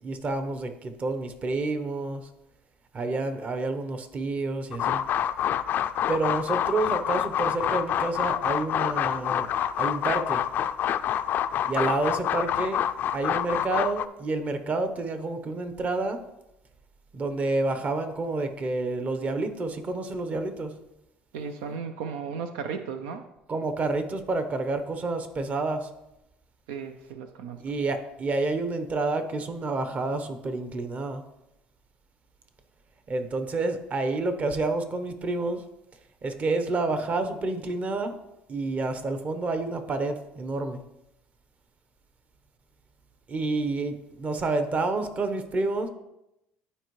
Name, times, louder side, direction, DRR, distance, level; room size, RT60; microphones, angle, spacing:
voice 1, 0.0-2.2 2.9-5.0 6.1-9.5 9.8-10.4 11.6-12.8 13.1-16.2 17.1-20.7 23.5-25.9 27.6-31.2 33.1-35.6 36.2-38.1 38.5-40.8 43.3-45.9, right 3 dB, 35° right, 8 dB, 1.0 m, -29 dB
sound 1, 4.7-14.1, left 10 dB, 55° left, 0.4 m, -27 dB
voice 2, 21.3-23.3 26.7-27.6, right 6 dB, 90° right, 7 dB, 0.6 m, -35 dB
12.0 x 4.5 x 3.2 m, 0.88 s
supercardioid pair, 95°, 4 cm